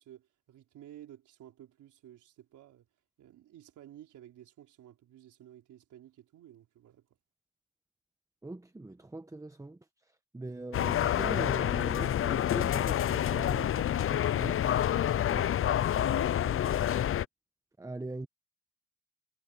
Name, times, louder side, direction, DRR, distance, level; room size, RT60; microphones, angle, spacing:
voice 1, 0.0-2.9 3.2-7.1 14.9-17.0, right 11 dB, 75° right, 4.2 m, -53 dB
voice 2, 8.4-9.8 10.3-14.6 15.3-15.4 17.8-18.3, right 2 dB, 10° right, 1.1 m, -41 dB
sound 1, 10.7-17.2, left 11 dB, 45° left, 0.6 m, -28 dB
cardioid pair, 90°, 30 cm